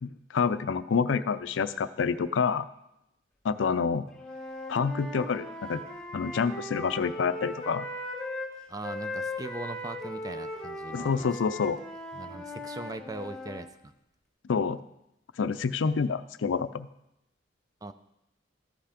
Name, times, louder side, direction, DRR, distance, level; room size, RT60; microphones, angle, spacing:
voice 1, 0.0-2.7 3.4-4.1 4.7-5.8 6.1-7.9 10.9-11.8 14.5-14.8 15.4-16.9, left 5 dB, 85° left, 14 dB, 0.5 m, -28 dB
Wind instrument woodwind instrument, 4.1-8.5 8.8-13.6, left 1 dB, 5° left, 2.2 m, -38 dB
voice 2, 8.7-11.3 12.1-13.9 17.8-17.9, right 2 dB, 20° right, 10 dB, 0.5 m, -40 dB
13.0 x 5.7 x 5.0 m, 0.83 s
head